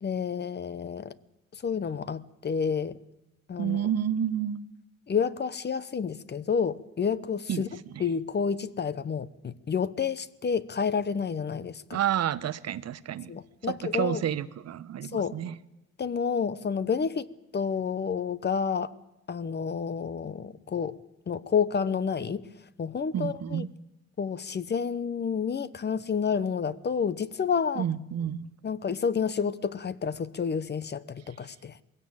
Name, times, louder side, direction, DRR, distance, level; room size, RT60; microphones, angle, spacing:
voice 1, 0.0-1.1 1.5-3.0 3.5-3.9 5.1-7.7 8.0-12.0 13.3-14.2 15.0-15.4 16.0-18.9 19.3-21.0 21.3-22.5 22.8-23.7 24.2-27.9 28.6-31.8, left 6 dB, 35° left, 0.8 m, -29 dB
voice 2, 3.6-4.7 7.5-7.6 11.9-13.3 13.7-15.6 23.1-23.7 27.8-28.5, right 9 dB, 60° right, 0.8 m, -30 dB
20.5 x 16.5 x 8.8 m
cardioid pair, 90°, 30 cm